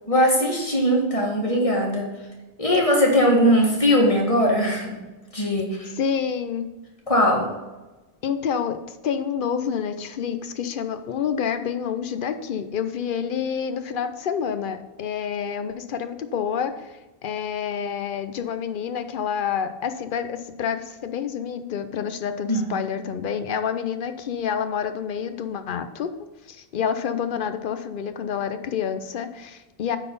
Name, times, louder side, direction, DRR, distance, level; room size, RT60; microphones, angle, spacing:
voice 1, 0.1-2.1 2.6-5.0 5.3-5.9 7.1-7.5 22.5-22.7, equal, 35° left, -2 dB, 1.8 m, -20 dB
voice 2, 6.0-6.7 8.2-30.0, left 7 dB, 60° left, 9 dB, 0.8 m, -28 dB
9.2 x 4.1 x 5.3 m, 1.1 s
omnidirectional pair, 1.0 m